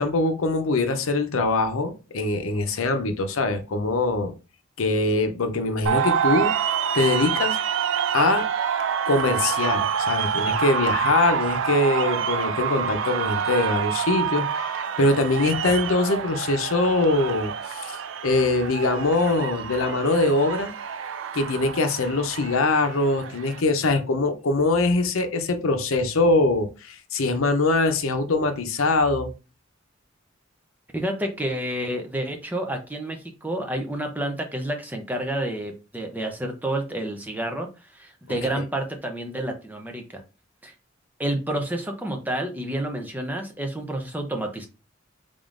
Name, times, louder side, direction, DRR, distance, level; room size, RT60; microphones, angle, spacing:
voice 1, 0.0-4.3 4.8-6.5 6.9-7.6 8.1-8.5 9.1-20.7 21.3-29.3 38.6-38.7, left 2 dB, 85° left, 0.6 m, -23 dB
sound 1, 5.9-23.6, right 7 dB, 65° right, 0.4 m, -27 dB
voice 2, 30.9-40.2 40.6-40.7 41.2-44.7, right 1 dB, 10° right, 0.5 m, -29 dB
3.7 x 3.6 x 2.5 m
head